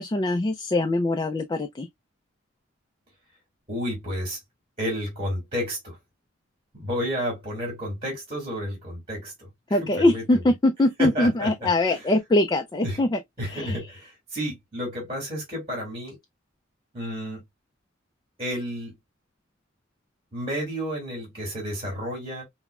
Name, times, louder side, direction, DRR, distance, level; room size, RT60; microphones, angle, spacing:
voice 1, 0.0-1.9 9.7-13.2 13.5-13.8, left 1 dB, 20° left, 0.3 m, -23 dB
voice 2, 3.7-4.4 4.8-6.0 6.7-10.4 11.0-12.0 12.8-13.0 13.4-16.2 16.9-17.4 18.4-18.9 20.3-22.4, equal, 30° right, 2.2 m, -31 dB
5.7 x 2.1 x 2.3 m
head